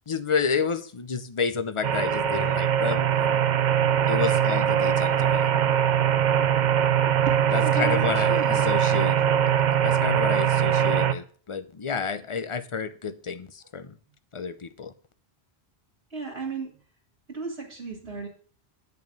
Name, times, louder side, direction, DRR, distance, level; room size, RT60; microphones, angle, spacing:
voice 1, 0.0-3.5 4.1-5.5 7.5-9.2 9.8-14.0 14.3-14.9, left 5 dB, 35° left, 0.7 m, -30 dB
sound 1, 1.8-11.1, right 9 dB, 50° right, 0.6 m, -22 dB
voice 2, 7.2-8.6 16.1-16.7 17.3-18.3, right 4 dB, 75° right, 2.1 m, -34 dB
9.4 x 5.4 x 7.7 m
omnidirectional pair, 1.1 m